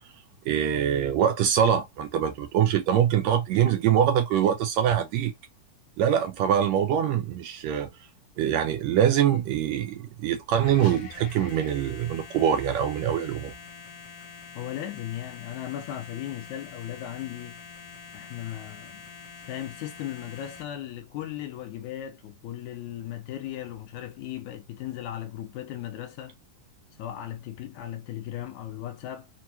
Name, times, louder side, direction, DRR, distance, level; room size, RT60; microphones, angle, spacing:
voice 1, 0.5-5.3 6.0-7.9 8.4-13.5, right 9 dB, 85° right, 1.6 m, -24 dB
sound 1, 10.6-20.6, left 6 dB, 55° left, 1.7 m, -45 dB
voice 2, 14.6-17.6 18.1-19.0 19.5-26.4 27.0-29.3, left 12 dB, 75° left, 2.0 m, -37 dB
6.1 x 2.3 x 2.8 m
omnidirectional pair, 3.7 m